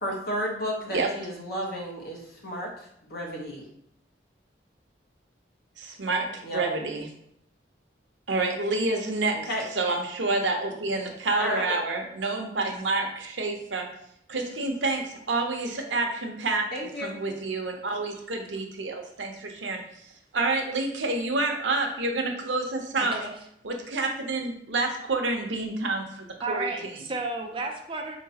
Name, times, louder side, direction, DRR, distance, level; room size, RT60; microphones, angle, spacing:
voice 1, 0.0-3.6 6.4-6.6 9.5-9.6 11.4-11.7 16.7-17.2, equal, 55° left, -2 dB, 1.0 m, -32 dB
voice 2, 5.8-6.3 6.5-7.1 8.3-9.4 9.7-13.9 14.3-16.7 17.0-19.8 20.3-23.3 23.6-26.9, right 3 dB, 85° right, 3 dB, 0.7 m, -28 dB
voice 3, 23.0-23.3 26.4-28.2, right 3 dB, 30° right, 3 dB, 0.4 m, -33 dB
4.6 x 2.9 x 2.8 m, 0.73 s
head